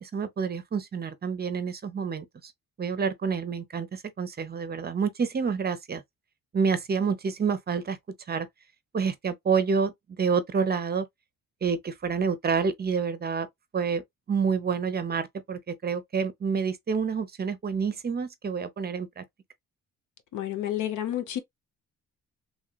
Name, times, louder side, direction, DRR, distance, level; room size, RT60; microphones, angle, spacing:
voice 1, 0.0-2.5 2.8-6.0 6.5-8.0 8.3-8.5 8.9-9.9 10.2-11.1 11.6-13.5 13.7-14.0 14.3-19.2, right 5 dB, 30° right, 0.6 m, -28 dB
voice 2, 20.3-21.4, left 12 dB, 80° left, 0.8 m, -30 dB
3.1 x 2.8 x 2.2 m
cardioid pair, 90°, 30 cm